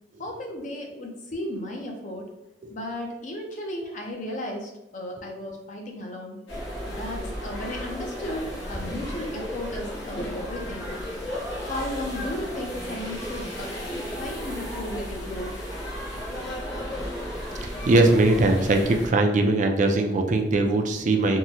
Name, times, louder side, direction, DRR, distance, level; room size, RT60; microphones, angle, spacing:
voice 1, 0.2-2.3 2.7-6.4 6.9-10.9 11.6-15.6, left 1 dB, 45° left, 1 dB, 0.5 m, -35 dB
sound 1, 6.5-19.1, equal, 75° left, 1.0 m, -34 dB
voice 2, 17.6-21.4, right 2 dB, 45° right, 4 dB, 0.4 m, -21 dB
3.5 x 2.0 x 2.8 m, 0.93 s
head